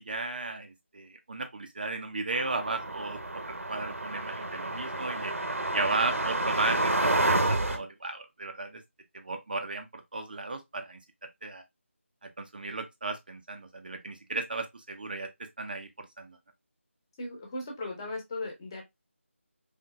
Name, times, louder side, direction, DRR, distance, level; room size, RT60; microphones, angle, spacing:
voice 1, 0.0-5.3 5.7-8.8 9.1-11.0 11.4-11.6 12.2-15.3 15.6-16.4, right 3 dB, 40° right, 0.7 m, -35 dB
sound 1, 2.3-7.8, right 2 dB, 85° right, 1.1 m, -29 dB
voice 2, 17.2-18.8, left 2 dB, 20° left, 1.2 m, -37 dB
4.1 x 3.5 x 2.3 m
figure-of-eight pair, 165°, 7 cm